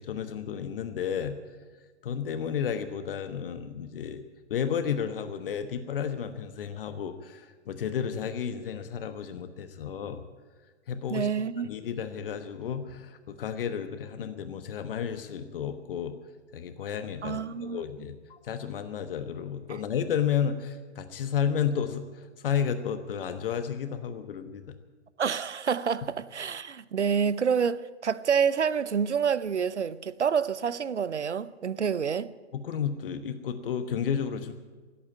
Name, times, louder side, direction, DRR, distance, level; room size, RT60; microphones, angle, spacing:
voice 1, 0.0-1.4 2.0-4.2 4.5-10.2 10.9-11.3 11.6-16.2 16.5-24.6 32.5-34.5, left 8 dB, 55° left, 1.2 m, -32 dB
voice 2, 11.1-11.7 17.2-18.1 19.7-19.8 25.2-32.3, right 7 dB, 85° right, 0.8 m, -28 dB
16.5 x 8.6 x 9.6 m
figure-of-eight pair, 120°, 34 cm